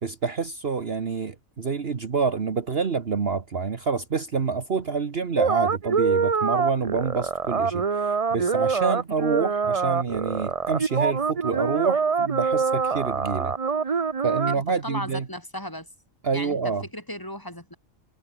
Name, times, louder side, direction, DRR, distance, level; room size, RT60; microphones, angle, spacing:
voice 1, 0.0-13.5 14.2-15.3 16.2-16.8, right 5 dB, 50° right, 1.5 m, -27 dB
sound 1, 5.4-14.6, right 5 dB, 30° right, 0.8 m, -25 dB
voice 2, 14.5-15.9 16.3-17.7, left 1 dB, 15° left, 3.6 m, -36 dB
omnidirectional pair, 1.4 m